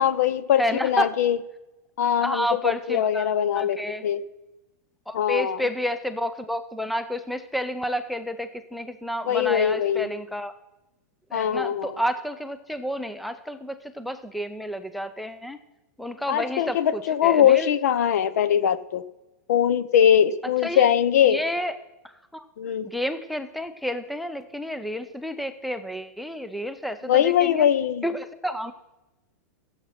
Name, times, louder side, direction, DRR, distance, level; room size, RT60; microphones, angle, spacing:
voice 1, 0.0-1.4 2.0-2.6 2.9-4.2 5.1-5.6 9.3-10.1 11.3-12.0 16.3-19.0 19.5-21.4 22.6-22.9 27.1-28.0, left 9 dB, 70° left, 16 dB, 0.9 m, -21 dB
voice 2, 0.6-1.1 2.2-4.0 5.1-10.5 11.3-15.6 16.0-17.7 20.6-20.9 21.3-21.8 22.0-22.4 22.8-27.7 28.0-28.7, equal, ahead, 11 dB, 0.5 m, -30 dB
15.5 x 7.8 x 5.7 m, 0.99 s
supercardioid pair, 160°, 9 cm